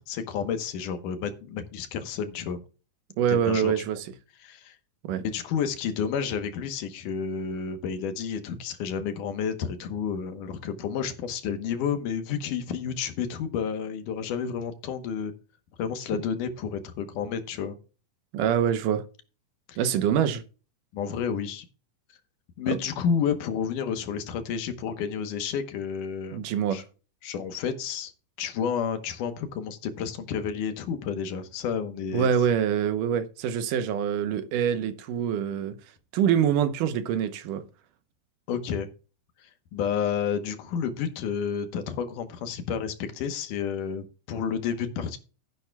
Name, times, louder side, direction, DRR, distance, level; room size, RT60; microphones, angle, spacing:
voice 1, 0.1-2.6 3.4-3.9 4.4-4.8 5.2-15.3 15.8-17.8 19.7-19.8 20.9-21.7 22.6-26.4 26.7-26.8 27.2-28.1 28.4-32.3 38.5-38.9 39.4-45.2, left 7 dB, 75° left, 2.6 m, -30 dB
voice 2, 3.2-4.1 5.0-5.2 18.3-19.0 19.8-20.4 22.7-22.8 26.3-26.8 32.1-35.8 36.1-37.6, right 8 dB, 80° right, 2.4 m, -25 dB
13.0 x 11.0 x 2.3 m
omnidirectional pair, 3.8 m